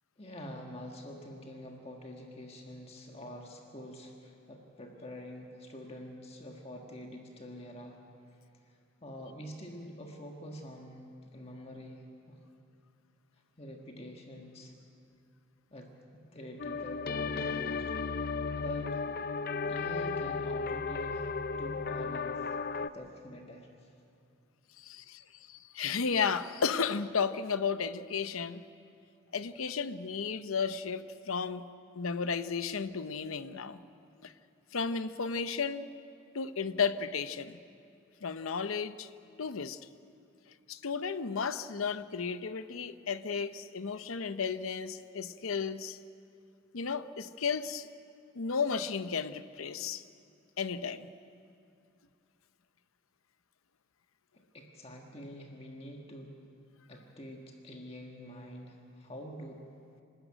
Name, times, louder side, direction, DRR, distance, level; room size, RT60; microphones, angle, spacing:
voice 1, 0.2-8.0 8.7-12.4 13.6-14.7 15.7-15.9 16.3-17.9 18.2-18.3 18.5-19.0 19.6-21.3 21.6-22.6 22.9-23.9 54.5-56.3 56.9-59.6, equal, 30° left, 1 dB, 1.6 m, -46 dB
sound 1, 16.6-22.9, left 4 dB, 45° left, 0.5 m, -34 dB
voice 2, 24.8-28.6 29.3-31.6 31.9-33.8 34.2-34.3 34.7-35.9 36.3-37.6 38.2-39.1 39.4-39.8 40.7-46.0 46.7-47.9 48.3-50.0 50.6-51.1, left 5 dB, 90° left, 12 dB, 0.8 m, -33 dB
26.5 x 12.5 x 9.0 m, 2.5 s
head